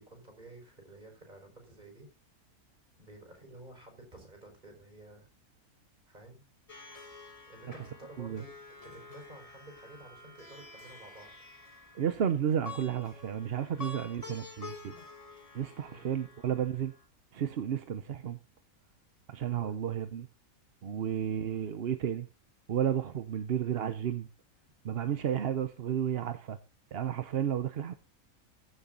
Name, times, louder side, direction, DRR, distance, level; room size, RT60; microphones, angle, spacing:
voice 1, 0.0-2.1 3.0-5.3 6.1-6.4 7.5-8.5 8.8-11.3 14.9-15.0 15.9-16.1 19.6-19.8 21.0-21.2, right 2 dB, 30° right, 5.2 m, -52 dB
Plucked string instrument, 6.7-17.0, left 3 dB, 25° left, 1.4 m, -49 dB
voice 2, 11.9-14.9 15.5-16.9 17.3-18.4 19.3-20.3 20.8-22.3 22.7-24.3 24.8-26.6 26.9-27.9, right 9 dB, 50° right, 0.8 m, -32 dB
15.5 x 7.2 x 3.8 m
omnidirectional pair, 1.5 m